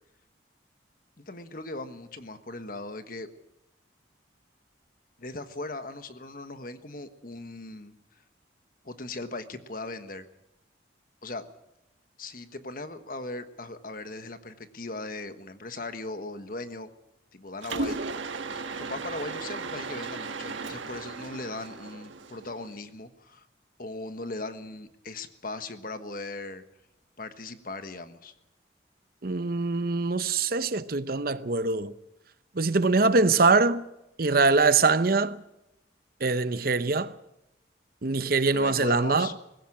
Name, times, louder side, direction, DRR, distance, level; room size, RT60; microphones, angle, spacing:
voice 1, 1.2-3.3 5.2-7.9 8.8-10.3 11.2-11.4 12.2-16.9 17.3-18.0 18.5-23.5 23.8-26.6 27.2-28.3 38.5-39.3, left 2 dB, 45° left, 1.4 m, -38 dB
Mechanisms, 17.6-22.7, right 3 dB, 85° right, 1.4 m, -36 dB
voice 2, 29.2-31.9 32.6-33.8 34.2-35.4 36.2-37.1 38.0-39.3, right 3 dB, 50° right, 0.7 m, -23 dB
20.0 x 16.0 x 8.7 m
head